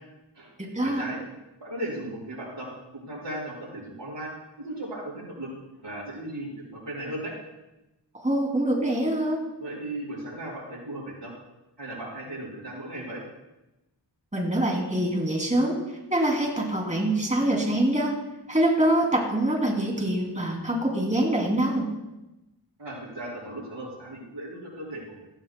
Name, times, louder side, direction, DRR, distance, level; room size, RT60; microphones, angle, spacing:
voice 1, 0.8-1.2 1.6-2.7 2.9-4.3 4.6-5.5 5.8-6.5 6.8-7.3 9.6-11.3 11.8-13.2 22.8-25.3, right 1 dB, 90° right, -5 dB, 5.5 m, -36 dB
voice 2, 8.1-9.4 14.3-15.8 16.1-18.1 18.5-21.9, right 1 dB, 15° right, -1 dB, 2.9 m, -24 dB
17.0 x 15.5 x 2.3 m, 0.98 s
wide cardioid pair, 65°, 42 cm